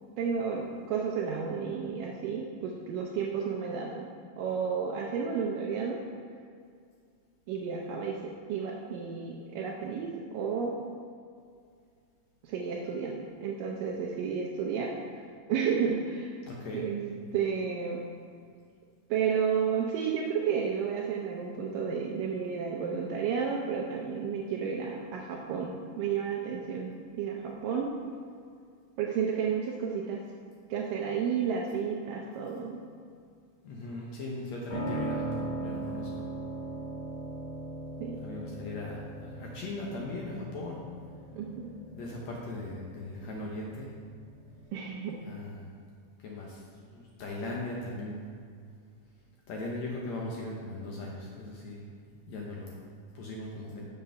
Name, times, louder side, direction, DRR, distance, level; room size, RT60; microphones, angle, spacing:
voice 1, 0.2-4.1 4.4-6.0 7.5-10.8 12.4-15.2 15.5-16.4 16.7-18.0 19.1-28.0 29.0-30.2 30.7-32.8 38.0-38.2 41.3-41.7 44.7-45.2, right 6 dB, 75° right, -1 dB, 2.1 m, -32 dB
voice 2, 16.4-16.8 33.6-36.2 38.2-40.8 41.9-43.9 45.2-45.7 46.2-46.6 46.9-48.2 49.5-51.8 52.3-52.7 53.1-53.9, left 2 dB, 75° left, -2 dB, 1.6 m, -39 dB
Piano, 34.7-44.6, right 2 dB, 55° left, 3.2 m, -39 dB
7.0 x 6.5 x 5.7 m, 2.2 s
omnidirectional pair, 4.4 m